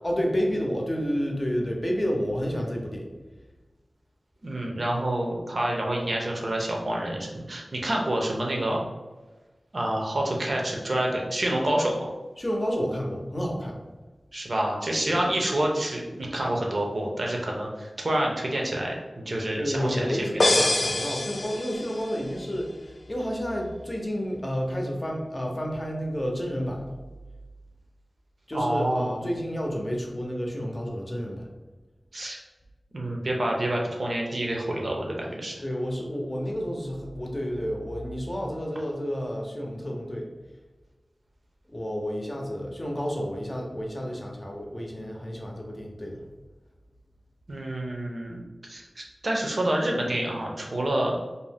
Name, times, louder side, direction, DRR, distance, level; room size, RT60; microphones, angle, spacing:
voice 1, 0.0-3.1 12.4-13.8 15.1-15.2 19.5-26.8 28.5-31.5 35.6-40.3 41.7-46.2, equal, 35° left, 0 dB, 0.6 m, -30 dB
voice 2, 4.4-8.8 9.7-12.1 14.3-20.7 28.5-29.2 32.1-32.4 32.9-35.6 47.5-48.4 48.7-51.2, right 1 dB, 60° right, -1 dB, 0.6 m, -28 dB
sound 1, 20.4-22.2, left 2 dB, 70° left, 0.3 m, -25 dB
2.6 x 2.1 x 3.3 m, 1.2 s
wide cardioid pair, 45°, 0 cm